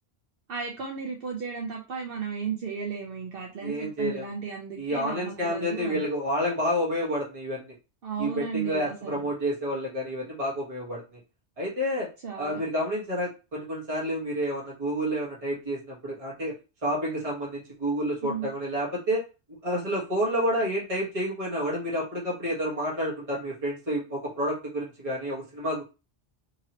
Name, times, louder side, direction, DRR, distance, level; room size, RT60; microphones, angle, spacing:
voice 1, 0.5-6.0 8.0-9.3 12.2-12.6 18.2-18.5, right 6 dB, 70° right, 1 dB, 0.8 m, -34 dB
voice 2, 3.6-4.3 4.8-7.7 8.2-11.0 11.6-12.1 12.4-16.5 16.8-19.2 19.6-25.8, equal, 35° right, -5 dB, 1.1 m, -29 dB
2.9 x 2.8 x 2.8 m, 0.31 s
omnidirectional pair, 1.1 m